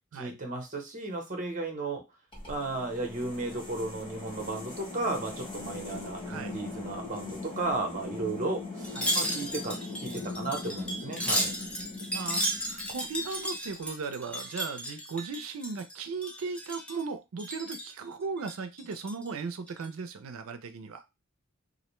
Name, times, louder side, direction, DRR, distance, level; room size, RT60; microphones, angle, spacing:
voice 1, 0.1-2.0 2.5-11.5, right 2 dB, 40° right, 3 dB, 0.7 m, -34 dB
sound 1, 2.3-13.4, left 3 dB, 25° left, 1.1 m, -41 dB
voice 2, 6.3-6.6 9.0-9.1 12.1-21.0, right 4 dB, 85° right, 10 dB, 0.4 m, -37 dB
Wind chime, 8.8-15.9 16.2-17.0 17.4-17.9 18.4-19.3 19.7-19.9, equal, 5° left, 0.5 m, -34 dB
2.5 x 2.1 x 3.0 m, 0.23 s
head